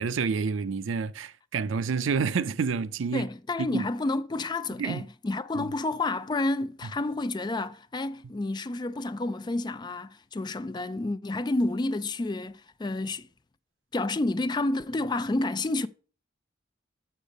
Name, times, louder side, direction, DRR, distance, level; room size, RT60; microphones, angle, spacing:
voice 1, 0.0-3.3 3.6-3.9 4.8-5.0 5.5-5.7, right 5 dB, 85° right, 0.5 m, -29 dB
voice 2, 3.1-13.3 13.9-15.9, left 2 dB, 20° left, 0.4 m, -30 dB
6.7 x 6.3 x 5.2 m
head